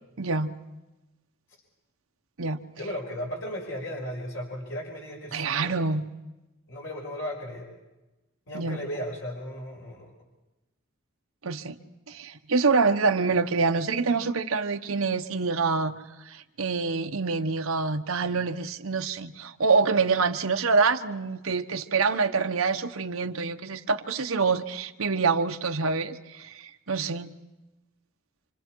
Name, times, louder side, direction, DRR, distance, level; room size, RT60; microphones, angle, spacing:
voice 1, 0.2-0.5 2.4-2.6 5.3-6.0 8.5-8.8 11.4-11.7 12.1-15.9 16.3-27.3, right 4 dB, 90° right, 7 dB, 1.0 m, -26 dB
voice 2, 2.7-5.8 6.7-7.7 8.5-10.1, equal, 70° left, -2 dB, 5.2 m, -35 dB
27.5 x 26.0 x 4.6 m, 1.0 s
head